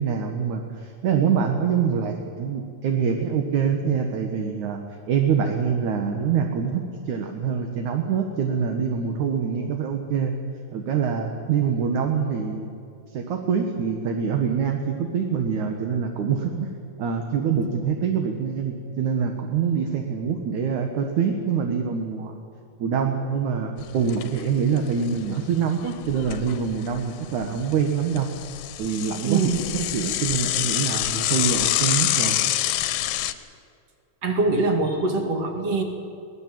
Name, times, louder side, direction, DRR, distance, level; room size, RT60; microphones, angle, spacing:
voice 1, 0.0-4.8 5.1-10.4 10.7-12.7 13.1-16.7 17.0-22.4 22.8-28.3 28.8-32.4, right 6 dB, 65° right, 3 dB, 2.6 m, -25 dB
Bicycle / Mechanisms, 23.8-24.4 24.8-24.9 25.1-25.2 25.9-27.0 27.4-33.3, left 14 dB, 85° left, 2.6 m, -26 dB
voice 2, 29.3-29.6 34.2-35.8, right 3 dB, 45° right, 3 dB, 3.0 m, -23 dB
23.5 x 18.0 x 7.6 m, 2.4 s
omnidirectional pair, 4.1 m